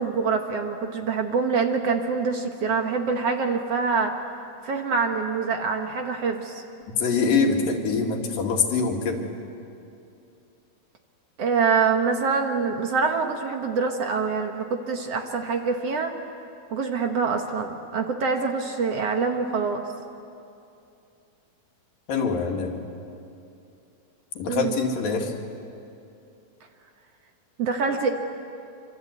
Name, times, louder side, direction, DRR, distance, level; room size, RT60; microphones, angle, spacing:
voice 1, 0.0-4.1 4.6-6.6 11.4-16.1 16.7-19.9 24.5-24.8 27.6-28.1, right 5 dB, 55° right, 4 dB, 2.1 m, -25 dB
voice 2, 7.0-9.3 22.1-22.7 24.4-25.3, left 4 dB, 90° left, 1 dB, 4.0 m, -24 dB
26.0 x 25.5 x 8.3 m, 2.6 s
omnidirectional pair, 3.9 m